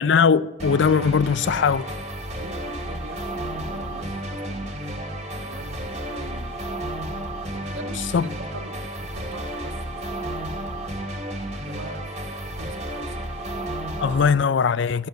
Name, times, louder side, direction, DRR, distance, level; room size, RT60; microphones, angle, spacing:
voice 1, 0.0-1.9 8.1-8.2 14.0-15.1, left 6 dB, 60° left, 0.4 m, -20 dB
sound 1, 0.6-14.3, right 1 dB, 35° right, 2.2 m, -32 dB
voice 2, 2.4-6.6 7.5-10.5 11.1-13.8, right 2 dB, 80° right, 1.7 m, -43 dB
14.0 x 6.8 x 7.8 m
head